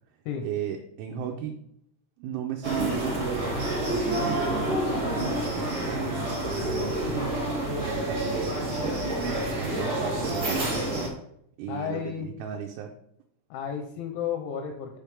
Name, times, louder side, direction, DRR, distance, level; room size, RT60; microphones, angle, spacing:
voice 1, 0.4-1.6 2.2-9.2 9.6-11.0 11.6-12.9, right 8 dB, 80° right, 2 dB, 3.0 m, -36 dB
sound 1, 2.6-11.1, right 1 dB, 40° right, 1.5 m, -28 dB
voice 2, 11.7-12.3 13.5-15.0, left 8 dB, 80° left, 4 dB, 2.8 m, -32 dB
7.1 x 6.6 x 3.5 m, 0.71 s
omnidirectional pair, 5.8 m